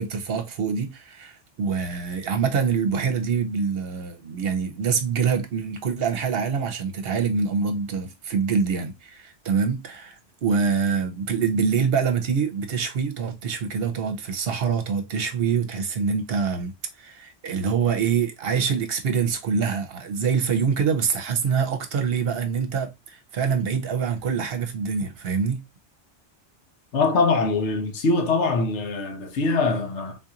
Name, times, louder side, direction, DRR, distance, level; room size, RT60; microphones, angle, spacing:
voice 1, 0.0-16.7 17.0-25.6, right 6 dB, 60° right, 0.9 m, -25 dB
voice 2, 26.9-30.2, left 3 dB, 75° left, 1.0 m, -23 dB
3.9 x 2.5 x 2.8 m
omnidirectional pair, 1.2 m